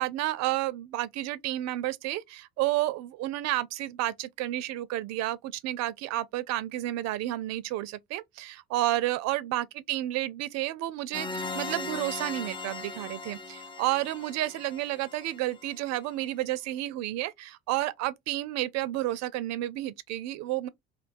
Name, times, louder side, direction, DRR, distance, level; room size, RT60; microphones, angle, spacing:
voice 1, 0.0-20.7, right 15 dB, 50° right, 0.4 m, -31 dB
sound 1, 11.1-15.8, left 3 dB, 15° left, 0.5 m, -39 dB
2.5 x 2.2 x 2.4 m
hypercardioid pair, 65°, 34 cm